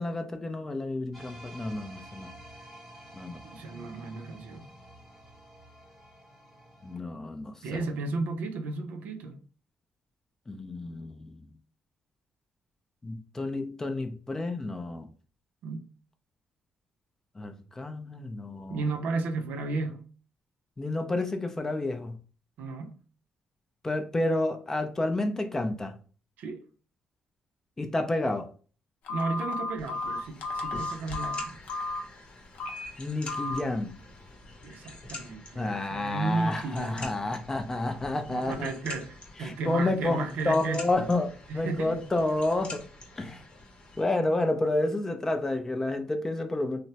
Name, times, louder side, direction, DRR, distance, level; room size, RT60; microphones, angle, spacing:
voice 1, 0.0-2.3 3.1-3.4 6.8-7.8 10.5-11.5 13.0-15.1 17.4-18.9 20.8-22.2 23.8-26.0 27.8-28.5 33.0-33.9 35.6-38.7 39.4-42.8 43.2-43.4 44.0-46.8, left 2 dB, 15° left, 0.4 m, -30 dB
sound 1, 1.1-7.0, right 1 dB, 5° right, 0.9 m, -50 dB
voice 2, 3.4-4.7 7.6-9.3 15.6-15.8 18.7-20.0 22.6-22.9 26.4-26.6 29.1-31.6 34.6-37.2 38.3-40.8 41.5-42.1, right 3 dB, 85° right, 0.5 m, -33 dB
Telephone, 29.1-32.0 32.6-32.9 33.3-33.6, left 2 dB, 75° left, 0.6 m, -33 dB
sound 2, 29.8-44.0, left 2 dB, 40° left, 0.8 m, -47 dB
3.2 x 2.0 x 2.7 m
cardioid pair, 125°, 3 cm